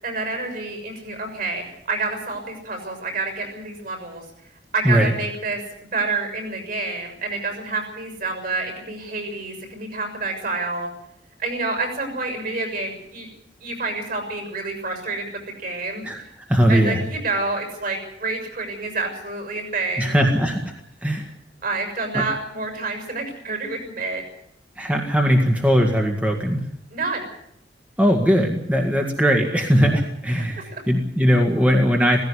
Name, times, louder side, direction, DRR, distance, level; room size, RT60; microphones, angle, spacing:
voice 1, 0.0-4.2 4.7-5.6 5.9-10.9 11.4-13.3 13.6-16.0 16.7-20.2 21.6-24.2 26.9-27.3 30.7-30.8, right 3 dB, 55° right, 5 dB, 6.5 m, -28 dB
voice 2, 16.5-17.0 20.0-20.7 21.0-21.3 22.1-22.2 24.8-26.7 28.0-32.2, equal, 10° right, 1 dB, 2.0 m, -19 dB
17.0 x 16.0 x 10.0 m, 0.74 s
head